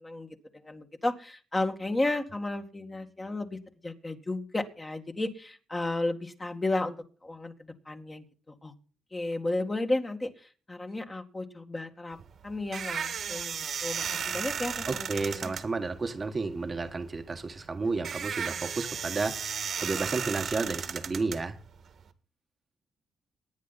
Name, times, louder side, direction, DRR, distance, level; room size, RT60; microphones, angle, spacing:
voice 1, 0.0-8.7 9.1-12.2 12.4-15.5, left 2 dB, 20° left, 2.0 m, -33 dB
sound 1, 12.1-22.1, right 7 dB, 55° right, 1.7 m, -35 dB
voice 2, 14.9-21.6, right 3 dB, 30° right, 1.4 m, -32 dB
23.5 x 9.6 x 4.1 m
cardioid pair, 90°, 0 cm